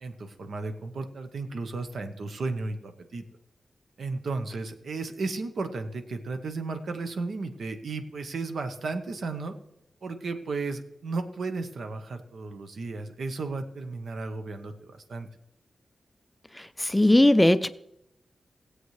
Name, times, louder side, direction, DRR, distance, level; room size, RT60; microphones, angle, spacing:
voice 1, 0.0-3.2 4.0-9.6 10.0-15.3, right 3 dB, 75° right, 7 dB, 0.9 m, -34 dB
voice 2, 16.6-17.7, left 1 dB, 10° left, 13 dB, 0.3 m, -19 dB
18.5 x 8.0 x 3.2 m, 0.82 s
wide cardioid pair, 125°, 0 cm